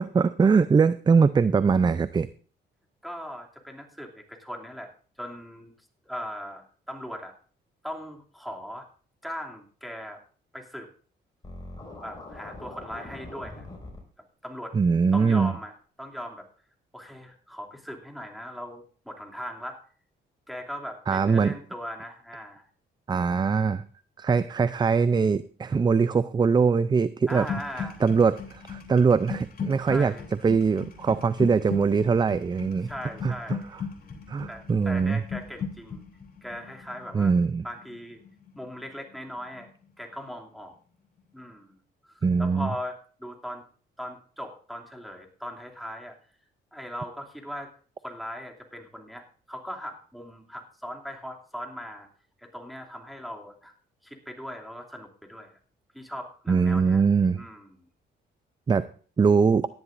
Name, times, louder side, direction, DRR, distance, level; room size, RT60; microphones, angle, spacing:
voice 1, 0.0-2.3 14.7-15.5 21.1-21.5 23.1-23.8 24.2-27.5 28.0-30.1 30.4-32.9 33.2-33.3 34.3-35.2 37.1-37.6 42.2-42.7 56.5-57.4 58.7-58.9 59.2-59.7, right 5 dB, 20° right, 15 dB, 0.4 m, -22 dB
voice 2, 3.0-4.9 5.2-5.7 6.0-7.3 7.8-8.9 9.2-10.2 10.5-10.9 12.0-13.7 14.4-14.8 15.1-15.7 16.0-16.5 16.9-19.8 20.5-22.6 27.3-28.0 29.9-30.3 32.8-33.7 34.5-36.0 36.4-37.3 37.6-38.2 38.6-39.7 40.0-40.7 41.3-41.8 42.0-43.6 44.0-46.2 46.7-47.7 48.0-52.1 52.4-53.7 54.0-55.6 55.9-57.0 57.4-57.7, equal, ahead, 1 dB, 2.7 m, -39 dB
Scratching (performance technique), 11.4-14.0, left 2 dB, 20° left, 5.6 m, -42 dB
sound 1, 27.3-39.2 39.4-39.8, left 6 dB, 45° left, 2.9 m, -38 dB
17.5 x 11.0 x 2.6 m, 0.41 s
cardioid pair, 90°, 20 cm